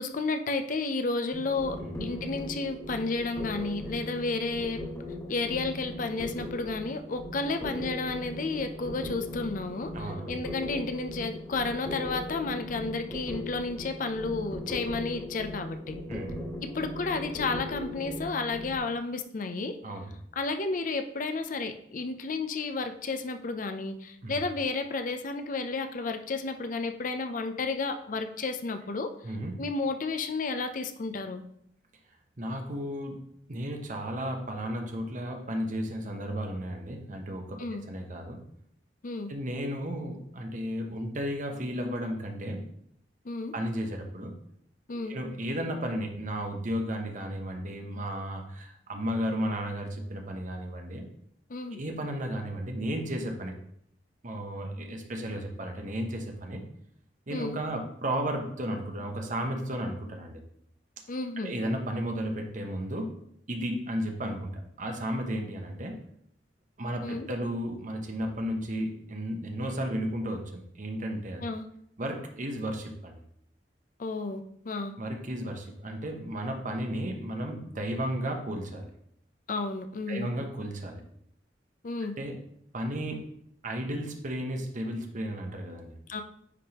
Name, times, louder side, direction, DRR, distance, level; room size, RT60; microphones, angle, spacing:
voice 1, 0.0-4.8 5.3-9.9 10.3-16.0 16.7-19.8 20.4-29.1 29.6-31.4 37.6-37.9 39.0-39.3 43.2-43.5 44.9-45.2 51.5-51.8 57.3-57.6 61.1-61.5 67.0-67.3 71.4-71.7 74.0-74.9 79.5-80.3 81.8-82.2 86.1-86.2, left 3 dB, 50° left, 8 dB, 0.6 m, -32 dB
sound 1, 1.3-18.8, left 1 dB, 15° left, 1.5 m, -39 dB
voice 2, 9.9-10.3 16.1-16.4 19.8-20.2 24.2-24.3 29.2-29.6 32.4-33.2 33.5-37.6 37.9-38.4 39.3-42.7 43.5-44.3 44.9-51.0 51.7-53.5 54.2-56.6 57.3-60.4 61.4-63.1 63.5-64.5 64.8-65.9 66.8-71.4 72.0-73.2 75.0-78.9 80.1-81.0 82.2-82.4 82.7-83.3 83.6-85.9, equal, 45° right, 3 dB, 1.0 m, -33 dB
9.8 x 3.5 x 2.9 m, 0.70 s
head